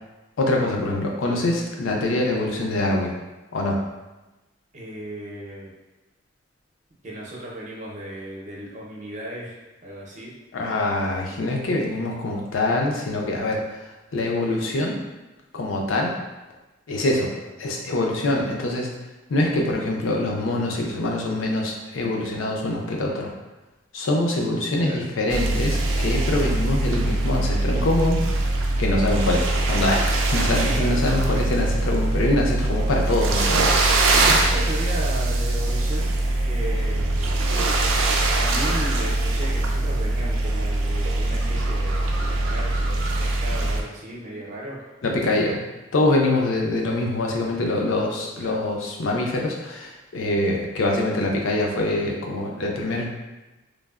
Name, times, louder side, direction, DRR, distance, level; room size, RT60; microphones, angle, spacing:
voice 1, 0.4-3.1 3.5-3.8 10.5-15.0 15.5-16.2 16.9-17.3 17.6-18.9 19.3-23.3 23.9-28.2 28.8-33.8 45.0-45.6 45.9-53.1, left 2 dB, 85° left, 0 dB, 0.5 m, -24 dB
voice 2, 4.7-5.7 7.0-9.6 9.8-10.3 24.8-25.0 30.7-31.2 34.4-36.1 36.4-37.3 38.4-44.8 48.4-48.5, right 1 dB, 40° right, -4 dB, 0.6 m, -35 dB
sound 1, 25.3-43.8, right 2 dB, 85° right, 0.4 m, -22 dB
3.2 x 2.0 x 2.3 m, 1.1 s
head